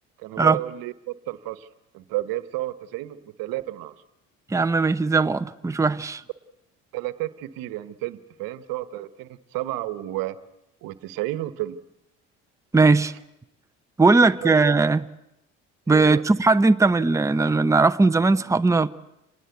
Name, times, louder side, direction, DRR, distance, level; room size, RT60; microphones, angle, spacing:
voice 1, 0.2-1.7 1.9-3.9 6.9-10.4 10.8-11.8 14.4-14.8 15.9-16.2, right 16 dB, 70° right, 1.3 m, -32 dB
voice 2, 4.5-6.2 12.7-13.1 14.0-15.0 15.9-18.9, right 3 dB, 10° right, 0.9 m, -19 dB
27.0 x 19.5 x 8.2 m
hypercardioid pair, 65°, 36 cm